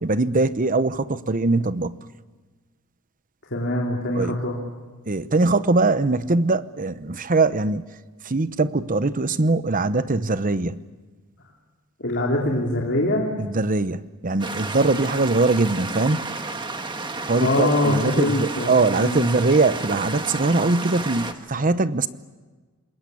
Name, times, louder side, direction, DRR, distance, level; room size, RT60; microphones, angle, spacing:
voice 1, 0.0-2.0 4.1-4.4 5.1-7.8 8.3-10.8 13.4-16.2 17.3-22.1, right 3 dB, 40° right, 0.9 m, -22 dB
voice 2, 3.5-4.6 12.0-13.3 17.4-19.2, left 1 dB, 55° left, 3.4 m, -23 dB
sound 1, 14.4-21.3, right 3 dB, 20° right, 1.5 m, -31 dB
27.5 x 21.5 x 8.4 m
head